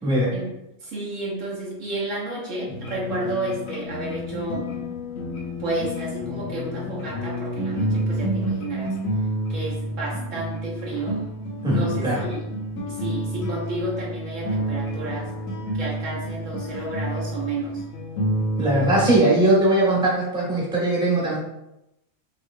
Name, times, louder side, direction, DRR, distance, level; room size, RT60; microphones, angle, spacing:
voice 1, 0.0-0.3 11.6-12.2 18.6-21.4, right 1 dB, 5° right, -6 dB, 1.1 m, -20 dB
voice 2, 0.8-4.7 5.6-9.0 9.5-11.2 11.6-12.5 12.9-15.3 15.7-17.8, right 2 dB, 70° right, -5 dB, 1.5 m, -31 dB
sound 1, 2.7-19.2, equal, 85° left, 1.3 m, -29 dB
5.4 x 3.1 x 2.3 m, 0.88 s
omnidirectional pair, 1.4 m